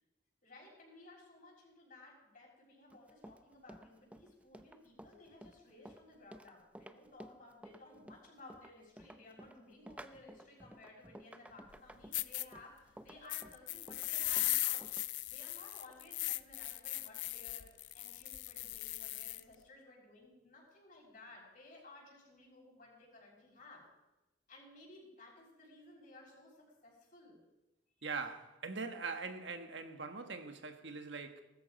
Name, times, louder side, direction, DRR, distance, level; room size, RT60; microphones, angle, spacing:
voice 1, 0.4-14.9 15.3-17.7 17.9-23.9 24.5-27.4, left 2 dB, 45° left, 6.4 m, -57 dB
Run, 2.9-15.1, right 1 dB, 5° right, 0.6 m, -54 dB
sound 1, 11.7-11.8 12.1-12.5 13.3-19.4, left 16 dB, 85° left, 0.5 m, -38 dB
voice 2, 28.0-31.5, right 4 dB, 75° right, 1.4 m, -42 dB
19.5 x 13.5 x 5.3 m
head